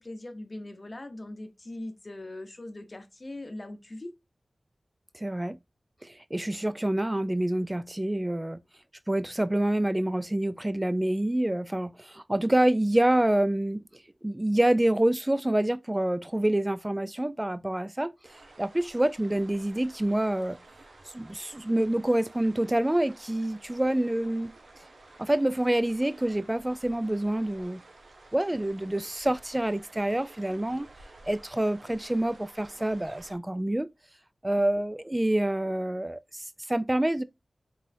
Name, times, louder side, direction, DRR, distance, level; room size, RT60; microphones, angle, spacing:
voice 1, 0.0-4.1, left 1 dB, 40° left, 0.8 m, -40 dB
voice 2, 5.1-5.6 6.0-8.6 9.1-13.8 14.2-18.1 18.6-20.6 21.1-24.5 25.2-27.8 28.3-30.9 31.3-33.9 34.4-37.2, right 1 dB, 20° right, 0.3 m, -27 dB
sound 1, 18.2-33.4, right 2 dB, 75° right, 0.8 m, -52 dB
4.0 x 3.8 x 2.6 m
wide cardioid pair, 70°, 0 cm